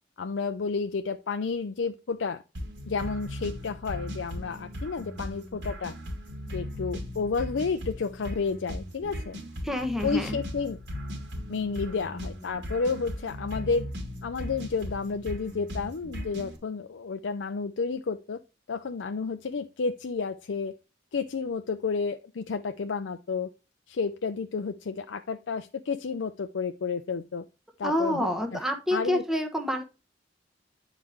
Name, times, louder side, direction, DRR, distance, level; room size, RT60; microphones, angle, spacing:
voice 1, 0.2-2.4 2.9-5.9 6.5-9.4 10.0-10.8 11.5-13.9 14.2-18.4 18.7-20.8 21.1-23.5 23.9-27.4 27.8-29.2, left 4 dB, 90° left, 8 dB, 0.5 m, -31 dB
sound 1, 2.5-16.6, equal, 70° right, 2.8 m, -38 dB
voice 2, 9.6-10.4 27.8-29.8, left 1 dB, ahead, 3 dB, 1.1 m, -28 dB
9.3 x 4.9 x 3.1 m, 0.30 s
head